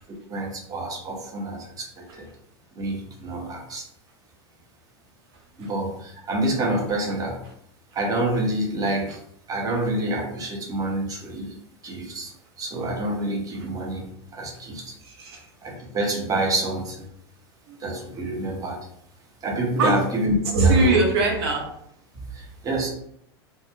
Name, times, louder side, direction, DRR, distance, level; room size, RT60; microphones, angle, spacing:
voice 1, 0.1-2.3 2.7-3.8 5.6-7.4 7.9-9.2 9.5-11.6 11.8-12.3 12.6-14.1 14.3-14.9 15.6-17.1 17.8-18.9 19.4-21.0 22.3-22.9, right 1 dB, 25° right, 0 dB, 0.8 m, -27 dB
voice 2, 15.0-15.4 17.7-17.8 19.8-20.1 20.5-21.6, right 2 dB, 65° right, 1 dB, 0.8 m, -21 dB
2.4 x 2.2 x 3.0 m, 0.71 s
hypercardioid pair, 100°, 14 cm